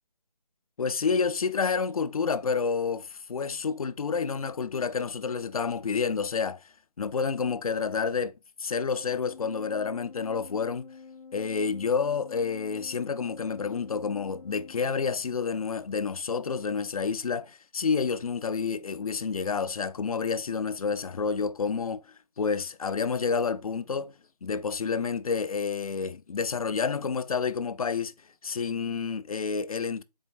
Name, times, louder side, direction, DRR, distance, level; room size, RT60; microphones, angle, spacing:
voice 1, 0.8-6.6 7.0-8.3 8.6-10.9 11.3-22.0 22.4-24.1 24.4-28.1 28.4-30.0, left 5 dB, 60° left, 0.4 m, -29 dB
Organ, 9.0-15.5, left 5 dB, 80° left, 0.8 m, -48 dB
4.3 x 3.1 x 3.4 m
figure-of-eight pair, 175°, 21 cm